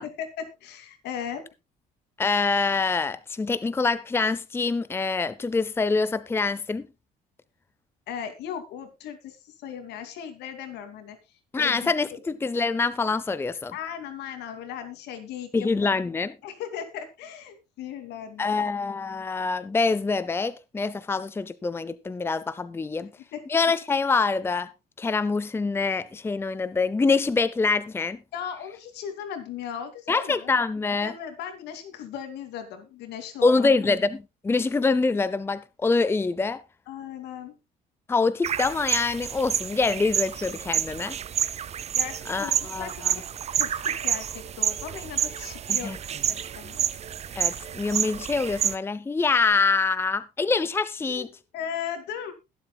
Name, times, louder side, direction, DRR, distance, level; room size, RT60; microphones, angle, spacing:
voice 1, 0.0-1.4 8.1-11.2 11.6-12.2 13.7-15.9 16.4-18.6 23.3-23.5 28.3-30.5 31.0-33.7 34.6-34.7 36.9-37.5 41.9-43.2 43.5-46.8 51.1-52.3, left 8 dB, 80° left, 2.7 m, -37 dB
voice 2, 2.2-6.9 11.5-13.7 15.5-16.3 18.4-23.1 23.5-24.7 25.0-28.2 30.1-31.1 33.4-36.6 38.1-41.2 42.3-43.2 45.7-46.0 47.4-51.3, left 4 dB, 15° left, 0.6 m, -25 dB
sound 1, 38.4-48.7, right 9 dB, 40° right, 0.7 m, -29 dB
21.0 x 7.7 x 2.3 m
cardioid pair, 110°, 17 cm